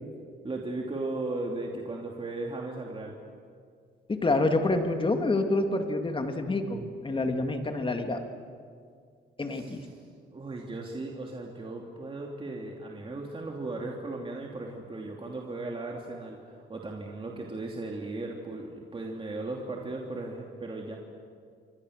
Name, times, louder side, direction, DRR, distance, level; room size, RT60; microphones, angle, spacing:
voice 1, 0.4-3.1 9.5-9.9 10.3-21.0, right 2 dB, 25° right, 0 dB, 2.9 m, -36 dB
voice 2, 4.1-8.2 9.4-9.8, left 2 dB, 25° left, 5 dB, 2.6 m, -27 dB
28.5 x 23.5 x 6.6 m, 2.2 s
cardioid pair, 90°, 20 cm